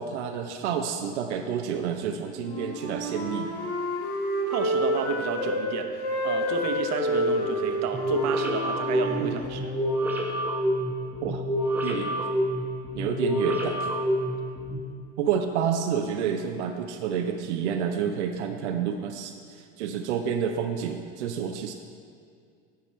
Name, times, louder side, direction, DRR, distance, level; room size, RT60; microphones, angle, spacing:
voice 1, 0.0-3.5 9.2-9.4 11.2-11.4 11.8-12.2 12.9-13.9 15.2-21.7, right 7 dB, 90° right, 5 dB, 0.5 m, -29 dB
Wind instrument woodwind instrument, 2.3-5.6 5.9-9.7, equal, 80° left, 2.1 m, -29 dB
voice 2, 4.5-5.9 6.2-9.7, right 7 dB, 50° right, 5 dB, 0.9 m, -31 dB
sound 1, 7.9-14.8, equal, 5° right, 0.8 m, -28 dB
10.0 x 4.7 x 4.4 m, 2.2 s
hypercardioid pair, 85°, 34 cm